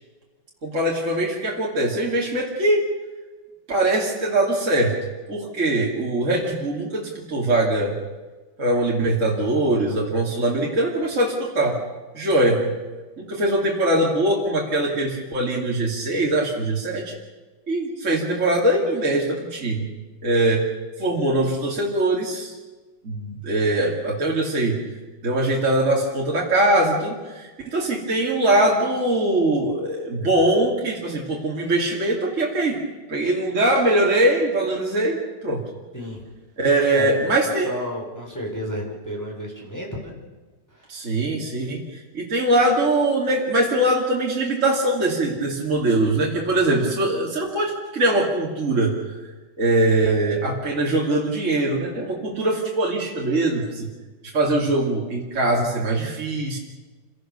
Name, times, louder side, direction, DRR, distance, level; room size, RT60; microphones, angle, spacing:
voice 1, 0.6-2.9 3.7-5.0 5.3-7.9 8.6-11.8 12.1-12.7 13.2-17.1 17.7-19.9 20.2-20.6 21.0-22.5 23.0-24.8 25.2-32.8 33.1-35.6 36.6-37.7 40.9-41.8 42.1-48.9 49.6-53.9 54.3-56.6, right 1 dB, 40° right, -3 dB, 3.0 m, -22 dB
voice 2, 36.9-37.4 37.6-40.1 40.7-41.1, equal, 10° left, -2 dB, 4.3 m, -32 dB
28.0 x 17.5 x 6.8 m, 1.3 s
omnidirectional pair, 1.9 m